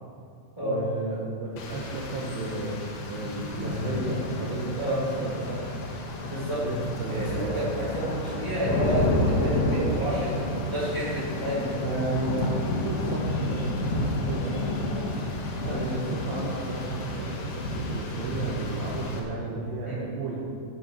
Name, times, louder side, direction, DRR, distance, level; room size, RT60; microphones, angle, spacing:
voice 1, 0.6-2.8 3.1-5.7 6.5-7.7 11.8-14.6 15.6-20.4, right 2 dB, 70° right, -3 dB, 2.6 m, -33 dB
Rain, 1.6-19.2, left 1 dB, 80° left, 1.5 m, -30 dB
voice 2, 6.3-6.6 7.0-11.8 13.3-13.5 14.2-14.5 19.8-20.0, right 1 dB, 5° left, -7 dB, 2.7 m, -30 dB
12.0 x 11.0 x 4.6 m, 2.3 s
omnidirectional pair, 5.1 m